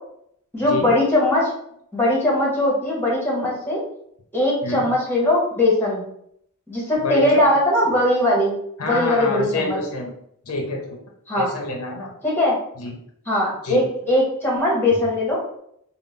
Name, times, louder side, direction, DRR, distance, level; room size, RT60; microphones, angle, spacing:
voice 1, 0.5-1.5 1.9-3.8 4.3-6.0 6.7-8.5 8.8-9.8 11.3-11.5 12.2-12.6 13.3-15.4, left 1 dB, 10° left, -3 dB, 1.2 m, -20 dB
voice 2, 7.0-7.4 7.9-8.0 8.8-10.1 10.4-11.0 11.3-12.1 12.8-13.0 13.6-13.8, left 2 dB, 70° left, 1 dB, 0.7 m, -27 dB
3.7 x 2.1 x 3.9 m, 0.70 s
head